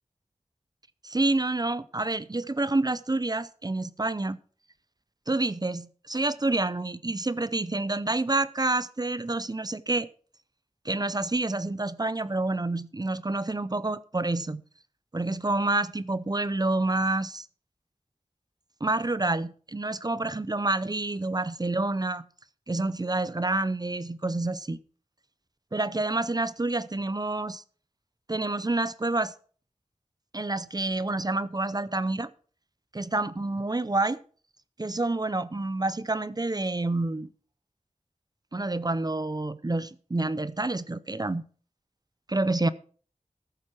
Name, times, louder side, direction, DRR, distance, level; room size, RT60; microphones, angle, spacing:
voice 1, 1.0-4.4 5.3-10.1 10.8-14.6 15.1-17.5 18.8-22.3 22.7-24.8 25.7-27.6 28.3-29.3 30.3-32.3 32.9-34.2 34.8-37.3 38.5-41.4 42.3-42.7, right 2 dB, 35° right, 0.6 m, -28 dB
14.0 x 7.4 x 4.4 m
wide cardioid pair, 55°, 12 cm